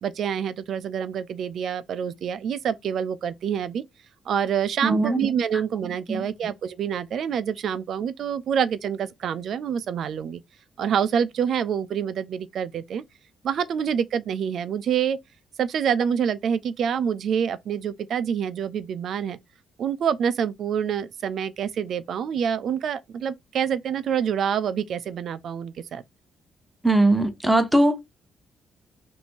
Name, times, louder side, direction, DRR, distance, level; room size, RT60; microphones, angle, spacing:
voice 1, 0.0-3.8 4.3-10.4 10.8-13.0 13.4-15.2 15.6-19.4 19.8-26.0, right 8 dB, 60° right, 0.4 m, -27 dB
voice 2, 4.8-5.2 5.8-6.2 26.8-28.0, right 1 dB, 5° right, 0.6 m, -20 dB
2.9 x 2.6 x 4.3 m
cardioid pair, 130°, 0 cm